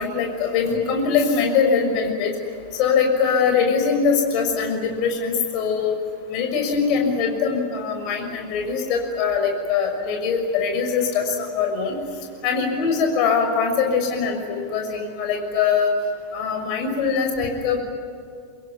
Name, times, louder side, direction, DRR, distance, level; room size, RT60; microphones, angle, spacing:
voice 1, 0.0-2.3 2.7-6.0 6.3-12.0 12.4-15.9 16.3-17.8, left 5 dB, 40° left, 3 dB, 6.2 m, -22 dB
25.5 x 22.0 x 9.7 m, 2.4 s
figure-of-eight pair, 90°, 0 cm